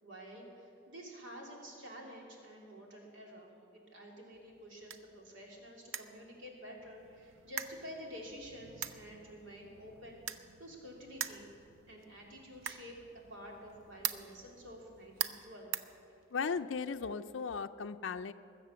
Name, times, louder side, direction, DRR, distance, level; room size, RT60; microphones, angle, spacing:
voice 1, 0.0-10.2 10.6-11.5 11.9-15.8, equal, 70° right, -1 dB, 2.7 m, -50 dB
sound 1, 4.3-16.6, right 9 dB, 85° right, 0.6 m, -45 dB
voice 2, 16.3-18.3, left 5 dB, 65° left, 8 dB, 0.5 m, -36 dB
21.0 x 7.5 x 7.0 m, 2.7 s
head